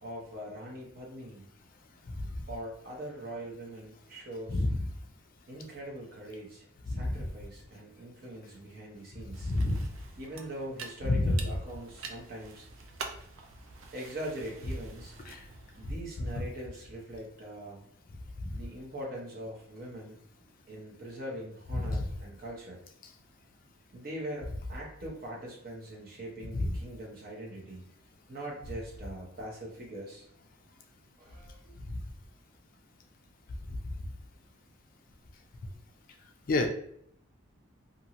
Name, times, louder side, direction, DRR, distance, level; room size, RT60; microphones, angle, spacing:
voice 1, 0.0-1.4 2.5-4.7 5.5-9.5 10.2-12.7 13.9-15.2 15.8-17.9 18.5-20.2 20.7-22.8 23.9-27.8 28.3-30.3 31.2-31.7, right 1 dB, 45° right, -3 dB, 0.8 m, -42 dB
sound 1, 9.3-15.9, right 4 dB, 70° right, 0.4 m, -46 dB
voice 2, 9.4-9.9 11.0-11.3 15.3-15.4 15.8-15.9 18.4-18.6 21.7-22.0 26.5-26.7 31.9-32.0 33.7-34.0 36.5-36.7, left 2 dB, 40° left, 4 dB, 0.3 m, -29 dB
2.7 x 2.5 x 2.8 m, 0.67 s
head